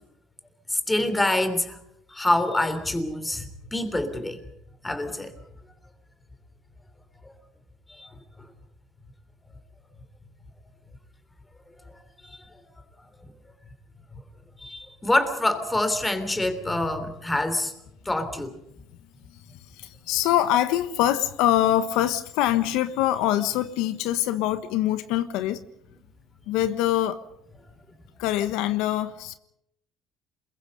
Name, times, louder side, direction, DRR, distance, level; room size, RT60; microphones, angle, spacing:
voice 1, 0.7-1.8 2.1-4.4 4.8-5.3 7.2-7.3 7.9-8.1 12.2-12.4 14.6-17.7 18.0-18.6, left 1 dB, 10° left, 3.3 m, -26 dB
voice 2, 19.7-25.6 26.5-27.2 28.2-29.4, left 12 dB, 80° left, 1.2 m, -24 dB
27.5 x 22.0 x 5.4 m
cardioid pair, 120°, 0 cm